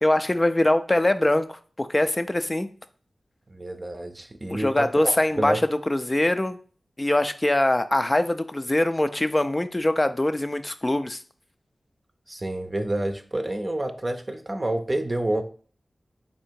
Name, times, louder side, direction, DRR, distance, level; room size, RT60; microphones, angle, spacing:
voice 1, 0.0-2.7 4.5-6.6 7.0-11.2, left 1 dB, 30° left, 10 dB, 0.5 m, -23 dB
voice 2, 3.5-5.6 12.3-15.4, right 1 dB, 35° right, 5 dB, 0.6 m, -28 dB
4.2 x 2.7 x 4.6 m, 0.42 s
cardioid pair, 40°, 0 cm